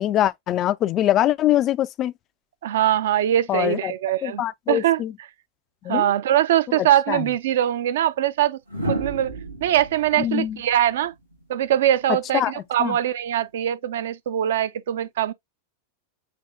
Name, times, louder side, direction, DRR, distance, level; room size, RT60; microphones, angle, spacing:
voice 1, 0.0-2.1 3.5-3.9 4.2-5.1 5.8-6.1 7.1-7.3 10.2-10.6 12.3-12.5 12.8-13.0, left 12 dB, 30° left, 0.3 m, -23 dB
voice 2, 2.6-4.4 4.7-5.0 5.9-8.6 8.9-9.3 9.6-11.1 11.5-15.3, right 12 dB, 60° right, 0.5 m, -22 dB
sound 1, 7.1-7.3 8.7-11.7 13.3-13.6, right 2 dB, 80° right, 1.3 m, -32 dB
6.8 x 2.9 x 2.6 m
figure-of-eight pair, 90°, 0 cm